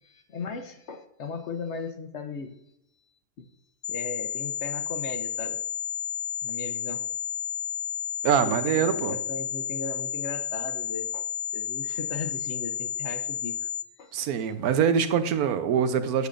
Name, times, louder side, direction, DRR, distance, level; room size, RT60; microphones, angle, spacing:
voice 1, 0.0-2.6 3.4-3.5 3.9-5.6 6.4-7.1 8.4-11.3 11.5-13.6 14.0-14.1, left 4 dB, 60° left, 7 dB, 0.9 m, -37 dB
sound 1, 3.8-13.8, left 9 dB, 80° left, 0.4 m, -32 dB
voice 2, 8.2-9.2 14.1-16.3, right 7 dB, 80° right, 10 dB, 1.2 m, -24 dB
8.2 x 6.7 x 2.5 m, 0.80 s
omnidirectional pair, 1.5 m